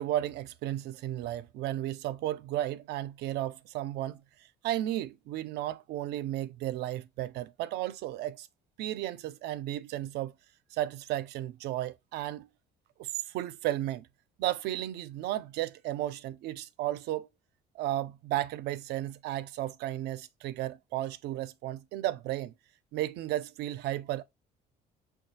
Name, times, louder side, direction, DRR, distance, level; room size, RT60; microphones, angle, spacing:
voice 1, 0.0-4.2 4.6-8.5 8.8-10.3 10.7-12.5 13.0-14.1 14.4-17.3 17.7-22.5 22.9-24.2, right 14 dB, 80° right, 0.4 m, -34 dB
5.3 x 2.3 x 2.7 m
cardioid pair, 110°, 17 cm